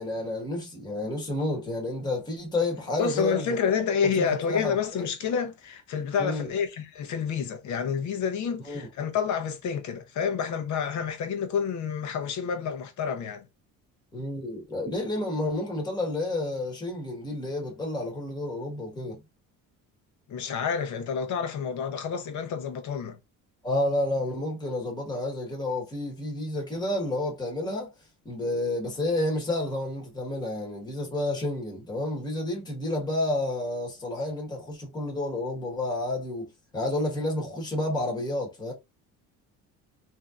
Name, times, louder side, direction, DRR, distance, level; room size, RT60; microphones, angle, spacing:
voice 1, 0.0-3.4 3.7-3.8 4.1-5.0 6.2-6.5 8.7-8.9 14.1-19.2 23.6-27.9 28.2-38.7, left 1 dB, 10° left, 1.3 m, -30 dB
voice 2, 3.0-13.5 20.3-23.2, left 6 dB, 55° left, 0.9 m, -29 dB
3.5 x 2.8 x 2.4 m
cardioid pair, 140°, 35 cm